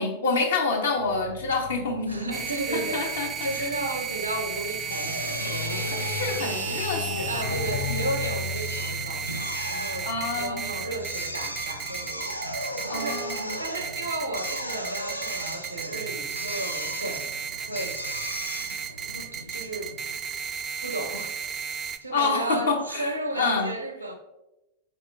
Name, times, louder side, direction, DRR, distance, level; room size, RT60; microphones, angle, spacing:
voice 1, 0.0-2.3 2.7-3.3 3.6-3.7 5.8-7.5 7.9-8.0 10.0-10.7 12.9-13.5 22.1-23.1 23.3-23.7, left 4 dB, 65° left, 0.8 m, -28 dB
sound 1, 1.0-12.6 13.4-13.6, left 6 dB, 25° left, 0.6 m, -38 dB
voice 2, 2.1-5.9 7.2-10.1 10.3-12.4 12.9-13.3 13.6-17.3 17.7-18.1 19.1-19.9 20.8-21.3 21.8-24.2, right 2 dB, 80° right, 0.6 m, -34 dB
sound 2, 2.3-22.0, right 7 dB, 25° right, 0.3 m, -34 dB
Drill, 4.9-20.2, equal, 90° left, 0.3 m, -36 dB
4.2 x 2.8 x 3.4 m
figure-of-eight pair, 90°, 0 cm